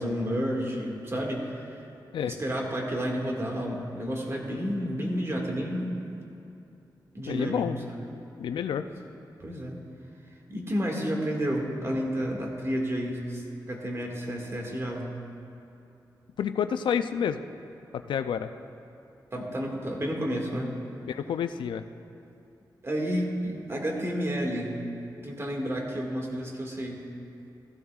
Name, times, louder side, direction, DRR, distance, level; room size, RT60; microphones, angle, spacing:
voice 1, 0.0-1.8 2.2-6.0 7.1-7.7 8.0-8.1 8.8-9.0 9.4-9.8 10.5-15.1 19.3-20.7 22.8-24.8 25.2-27.0, equal, 35° right, 0 dB, 1.9 m, -31 dB
voice 2, 7.3-7.8 8.4-8.9 16.4-17.4 17.9-18.5 21.0-21.8, left 8 dB, 85° left, 9 dB, 0.4 m, -29 dB
15.0 x 12.5 x 2.4 m, 2.7 s
cardioid pair, 65°, 8 cm